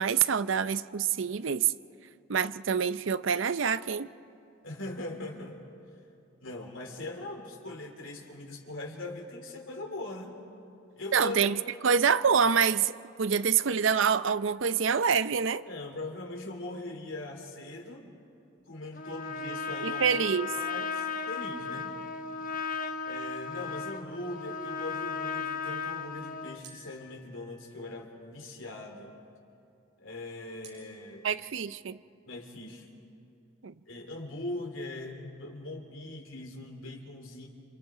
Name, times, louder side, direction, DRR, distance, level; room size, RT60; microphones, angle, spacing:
voice 1, 0.0-1.7 2.3-4.1 11.1-15.6 19.8-20.5 31.2-32.0 33.6-33.7, right 6 dB, 70° right, 14 dB, 0.6 m, -26 dB
voice 2, 4.6-5.6 6.4-10.4 11.0-11.4 15.7-18.2 18.7-20.2 20.5-22.0 23.0-29.1 30.0-31.3 32.2-32.9 33.9-37.5, left 2 dB, 75° left, 2 dB, 3.1 m, -41 dB
Trumpet, 19.0-26.6, left 5 dB, 40° left, 1.0 m, -35 dB
sound 1, 22.8-24.3 26.6-28.3 30.6-31.7, right 3 dB, 55° right, 6.0 m, -57 dB
28.0 x 27.5 x 5.0 m, 2.7 s
head